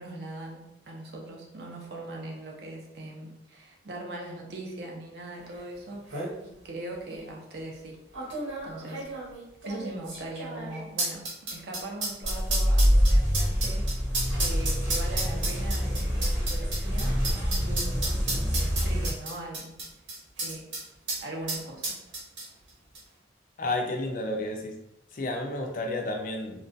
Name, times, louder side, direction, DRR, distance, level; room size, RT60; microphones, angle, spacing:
voice 1, 0.0-8.0 8.6-9.0 9.6-11.2 11.5-13.8 14.3-17.2 17.6-19.8 20.4-20.7 21.2-22.0, right 2 dB, 55° right, -1 dB, 0.5 m, -40 dB
sound 1, 5.6-5.7 5.9-6.3 7.1-7.2 8.1-20.8 21.1-21.2 21.5-22.7 22.9-23.0, right 2 dB, 75° right, 0.9 m, -32 dB
sound 2, 12.2-19.1, equal, 10° right, 0.7 m, -25 dB
voice 2, 23.6-24.8 25.1-26.6, left 2 dB, 45° left, 3 dB, 0.3 m, -31 dB
2.2 x 2.2 x 2.6 m, 0.85 s
head